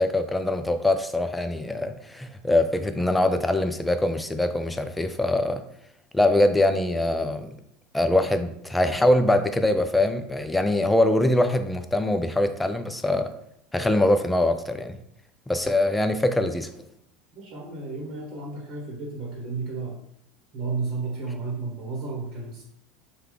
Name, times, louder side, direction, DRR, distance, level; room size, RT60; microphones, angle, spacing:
voice 1, 0.0-5.6 6.1-7.5 7.9-13.3 13.7-15.0 15.5-16.7, left 1 dB, 10° left, 8 dB, 0.3 m, -23 dB
voice 2, 17.3-20.0 20.5-22.6, right 4 dB, 45° right, -3 dB, 1.0 m, -32 dB
3.4 x 2.3 x 3.3 m, 0.74 s
hypercardioid pair, 80°, 0 cm